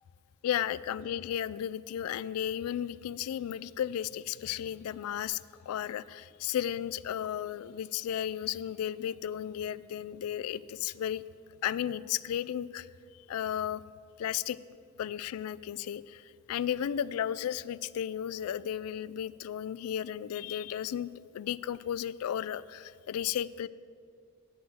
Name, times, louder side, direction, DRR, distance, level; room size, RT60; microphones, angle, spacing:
voice 1, 0.4-5.4 5.7-11.2 11.6-12.9 13.1-13.8 14.2-14.6 15.0-23.7, left 10 dB, 85° left, 17 dB, 0.3 m, -34 dB
9.1 x 6.0 x 7.8 m, 2.3 s
head